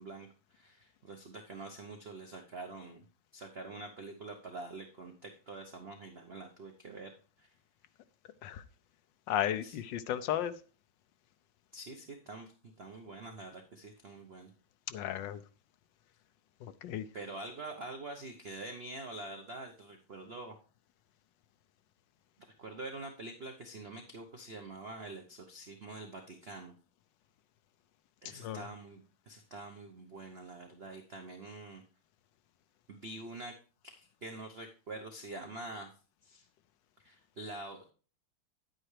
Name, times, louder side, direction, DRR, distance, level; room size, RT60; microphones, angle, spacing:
voice 1, 0.0-3.0 3.3-7.5 9.6-9.8 11.7-14.5 17.1-20.6 22.6-26.7 28.2-31.8 32.9-33.6 34.0-35.9 36.2-36.5 37.0-37.9, right 2 dB, 55° right, 0.6 m, -46 dB
voice 2, 9.3-10.5 14.9-15.4 16.6-17.1 28.4-28.6, left 11 dB, 75° left, 1.1 m, -34 dB
9.8 x 8.9 x 3.2 m
omnidirectional pair, 2.4 m